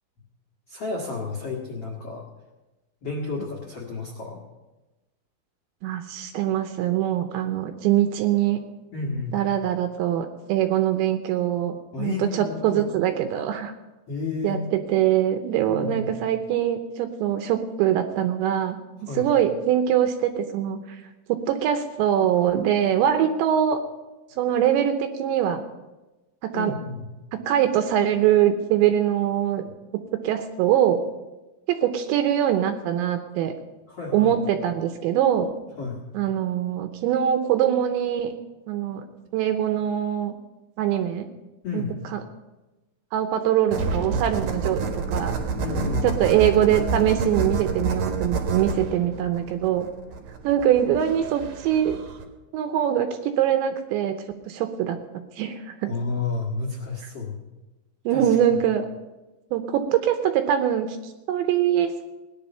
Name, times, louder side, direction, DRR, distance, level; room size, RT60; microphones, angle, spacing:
voice 1, 0.7-2.2 3.0-4.4 8.9-9.4 11.9-12.8 14.1-14.6 15.6-16.1 19.1-19.3 26.5-27.0 33.9-34.4 35.8-36.0 41.6-42.0 45.6-46.1 55.9-57.3 58.1-58.6, left 4 dB, 80° left, -2 dB, 1.3 m, -31 dB
voice 2, 5.8-8.6 9.3-13.7 14.4-18.8 19.1-21.0 21.3-23.8 24.4-25.6 26.4-26.7 27.3-29.7 29.9-31.0 31.7-33.5 34.1-35.5 36.1-38.3 38.7-39.1 39.3-40.4 40.8-41.3 41.7-41.8 42.1-42.2 43.1-45.4 46.0-49.9 50.4-52.0 52.5-55.0 55.3-55.9 58.1-58.9 59.5-62.0, right 10 dB, 80° right, 7 dB, 2.7 m, -23 dB
sound 1, 43.7-52.2, right 4 dB, 65° right, 2.2 m, -28 dB
18.0 x 10.5 x 5.6 m, 1.1 s
omnidirectional pair, 5.8 m